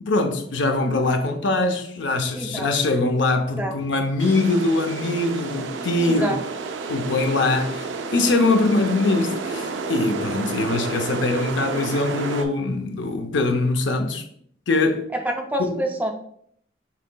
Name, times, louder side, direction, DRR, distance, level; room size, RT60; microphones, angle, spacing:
voice 1, 0.0-6.4 6.9-14.2 14.7-15.1 15.6-15.8, left 2 dB, 90° left, 0.6 m, -22 dB
voice 2, 2.3-2.7 3.6-3.7 6.0-6.4 15.4-16.1, right 1 dB, 10° right, 0.4 m, -27 dB
sound 1, 4.2-12.4, right 4 dB, 90° right, 0.5 m, -31 dB
5.7 x 3.6 x 2.2 m
head